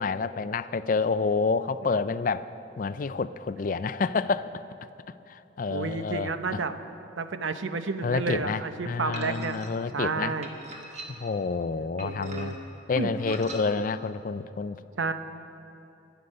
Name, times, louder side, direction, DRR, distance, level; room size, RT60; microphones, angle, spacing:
voice 1, 0.0-2.5 2.8-4.5 5.3-6.6 8.0-10.3 11.1-12.6 12.9-14.8, left 4 dB, 45° left, 14 dB, 0.4 m, -28 dB
voice 2, 5.7-6.7 7.2-9.6 9.9-10.5 12.0-12.6 13.0-13.1 15.0-15.1, right 4 dB, 80° right, 9 dB, 0.8 m, -31 dB
sound 1, 9.1-9.7 10.4-11.4 12.0-12.7 13.2-13.7, right 1 dB, 35° right, 1.4 m, -42 dB
23.5 x 8.1 x 5.4 m, 2.9 s
head